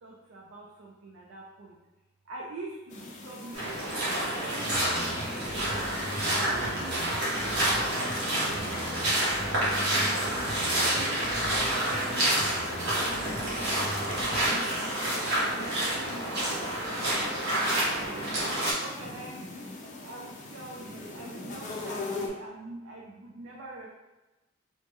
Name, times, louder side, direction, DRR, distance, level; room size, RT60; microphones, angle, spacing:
voice 1, 0.0-1.8 2.3-3.8 4.2-5.0 5.6-5.9 6.3-9.1 9.4-10.5 10.8-12.5 12.9-13.7 14.2-14.8 15.2-18.3 18.7-19.8 20.0-23.9, right 2 dB, 70° right, -3 dB, 0.4 m, -44 dB
sound 1, 2.9-22.3, left 3 dB, 35° left, 0.4 m, -43 dB
sound 2, 3.5-18.7, right 1 dB, 55° right, 0.9 m, -29 dB
sound 3, 4.6-14.4, equal, 20° left, 0.8 m, -40 dB
3.3 x 2.0 x 3.1 m, 1.1 s
head